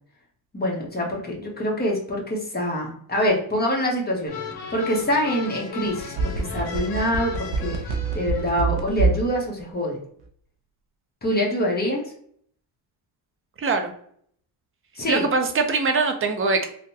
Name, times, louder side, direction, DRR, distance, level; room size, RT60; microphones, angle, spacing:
voice 1, 0.5-10.0 11.2-12.1 14.9-15.3, equal, 20° left, -1 dB, 1.1 m, -25 dB
sound 1, 4.3-8.5, left 5 dB, 55° left, 1.2 m, -36 dB
sound 2, 5.9-9.3 9.6-9.7, right 5 dB, 65° right, 0.8 m, -24 dB
voice 2, 13.6-13.9 15.1-16.6, right 4 dB, 25° right, 5 dB, 0.6 m, -22 dB
3.7 x 2.2 x 2.7 m, 0.62 s
cardioid pair, 110°, 48 cm